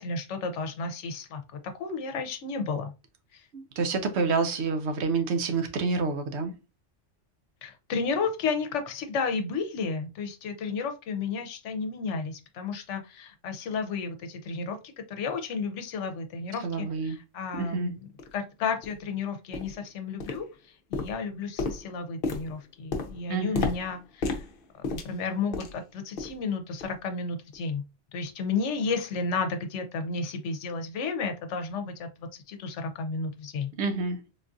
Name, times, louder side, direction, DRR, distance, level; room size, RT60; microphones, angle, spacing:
voice 1, 0.0-2.9 3.3-3.5 7.6-14.8 15.1-18.0 18.3-24.4 24.9-27.8 28.1-33.7, left 4 dB, 85° left, 0.9 m, -32 dB
voice 2, 3.5-6.5 16.6-17.2 17.6-17.9 23.3-23.7 33.8-34.2, right 4 dB, 70° right, 0.9 m, -28 dB
sound 1, 17.5-17.6 18.2-18.3 18.8-19.0 19.5-19.8 20.2-20.6 20.9-25.9 26.2-26.4 26.8-27.0 27.5-27.6, left 3 dB, 55° left, 0.7 m, -34 dB
3.8 x 2.4 x 2.5 m
omnidirectional pair, 1.2 m